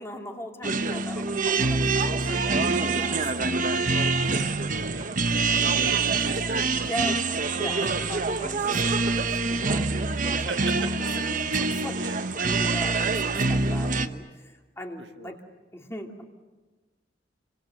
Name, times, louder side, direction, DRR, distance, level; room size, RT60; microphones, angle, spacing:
voice 1, 0.0-3.6 6.8-7.2 7.5-10.9 11.2-12.0 12.4-15.4 15.7-16.2, left 1 dB, 15° left, 2 dB, 2.6 m, -39 dB
sound 1, 0.6-14.1, right 4 dB, 45° right, 1.0 m, -25 dB
voice 2, 4.1-7.0 8.2-8.3 10.5-10.9 11.9-12.3 15.0-15.4, right 3 dB, 70° right, 6 dB, 1.5 m, -38 dB
29.0 x 24.5 x 7.7 m, 1.3 s
head